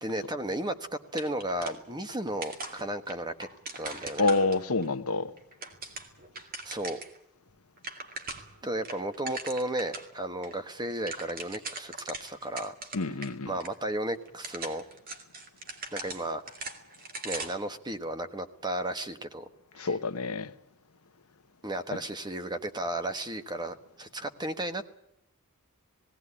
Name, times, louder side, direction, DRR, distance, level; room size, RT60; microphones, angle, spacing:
voice 1, 0.0-0.7 1.1-3.3 3.7-4.3 6.6-7.0 8.6-12.7 13.4-14.8 15.9-16.5 17.2-19.5 19.8-19.9 21.6-24.8, right 1 dB, 20° right, 1.3 m, -34 dB
sound 1, 1.1-2.2 2.4-4.9 5.4-7.2 7.5-7.6 7.8-8.6 8.8-10.1 10.4-10.5 10.8-13.3 13.6-13.7 14.3-17.7, right 3 dB, 40° right, 2.6 m, -40 dB
voice 2, 4.2-5.3 12.9-13.5 19.7-20.5 21.9-22.0, left 3 dB, 80° left, 1.0 m, -27 dB
18.0 x 18.0 x 9.8 m
head